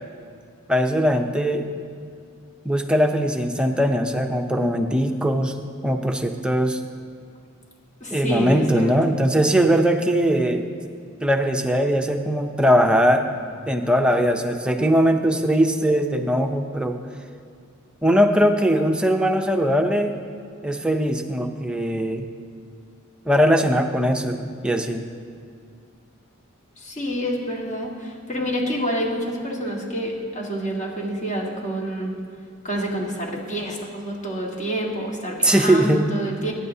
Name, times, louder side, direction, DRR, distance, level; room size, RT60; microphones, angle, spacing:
voice 1, 0.7-1.7 2.6-5.5 5.8-6.8 8.1-10.6 11.2-13.3 13.7-17.0 18.0-20.1 20.6-22.3 23.3-25.0 35.4-36.0, equal, 5° right, 4 dB, 0.6 m, -20 dB
voice 2, 8.0-9.2 26.8-32.2 32.6-36.5, equal, 35° left, -2 dB, 1.7 m, -28 dB
23.0 x 10.0 x 2.8 m, 2.3 s
head